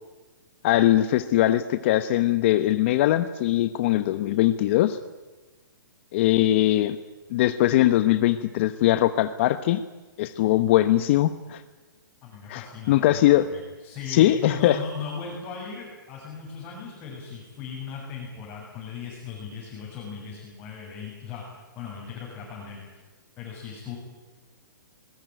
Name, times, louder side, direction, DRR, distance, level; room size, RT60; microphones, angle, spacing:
voice 1, 0.6-5.0 6.1-7.0 7.3-9.8 10.2-11.6 12.5-13.4 14.1-14.8, left 14 dB, 35° left, 12 dB, 0.9 m, -21 dB
voice 2, 12.2-22.8 23.4-24.0, left 5 dB, 20° left, -4 dB, 7.3 m, -38 dB
24.5 x 21.0 x 9.1 m, 1.2 s
hypercardioid pair, 160°, 11 cm